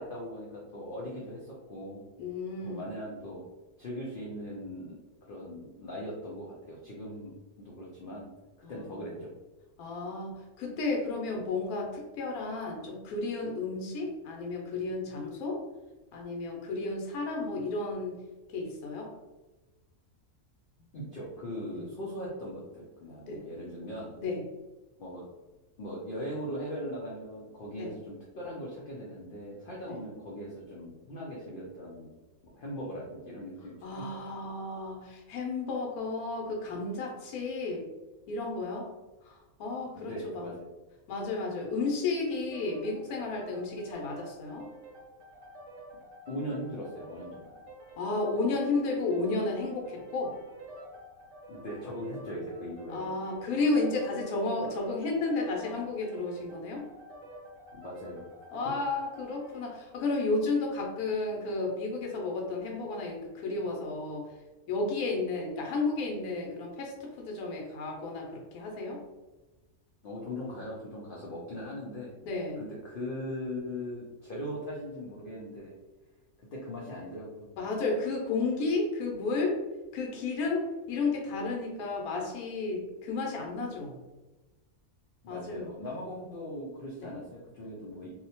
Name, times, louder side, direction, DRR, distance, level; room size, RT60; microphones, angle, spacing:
voice 1, 0.0-2.0 2.6-3.5 3.8-5.0 5.3-8.3 8.7-9.3 20.9-24.1 25.0-25.2 25.8-32.1 32.5-34.1 39.9-40.7 46.3-47.5 51.5-53.1 57.7-58.3 70.0-72.2 72.6-75.7 76.4-77.5 85.2-88.1, equal, 70° left, -5 dB, 0.5 m, -40 dB
voice 2, 2.2-3.0 8.6-9.1 9.8-15.6 16.1-18.1 18.5-19.1 21.7-21.8 23.3-23.4 24.2-24.4 27.8-27.9 29.9-30.0 33.8-37.8 38.3-38.9 39.2-40.5 41.1-44.7 48.0-50.3 52.9-56.9 58.5-64.3 64.7-69.0 72.2-72.6 77.6-79.6 79.9-84.0 85.3-85.7 87.0-87.2, left 3 dB, 90° left, 0 dB, 1.1 m, -32 dB
sound 1, 42.3-59.7, right 1 dB, 65° right, 1.0 m, -49 dB
2.7 x 2.1 x 2.7 m, 1.1 s
omnidirectional pair, 1.5 m